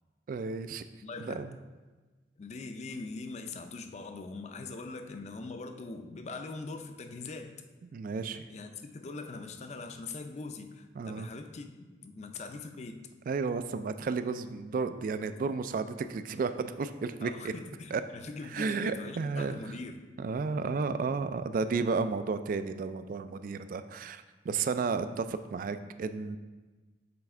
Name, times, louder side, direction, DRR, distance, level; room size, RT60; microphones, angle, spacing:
voice 1, 0.3-0.8 1.2-1.5 7.9-8.4 11.0-11.3 13.3-17.5 17.9-18.0 18.5-19.6 20.2-26.4, right 4 dB, 50° right, 11 dB, 0.3 m, -32 dB
voice 2, 1.0-1.5 2.4-7.6 8.5-11.7 12.0-13.0 17.2-20.0, left 3 dB, 40° left, 7 dB, 0.4 m, -42 dB
7.0 x 3.5 x 4.3 m, 1.3 s
head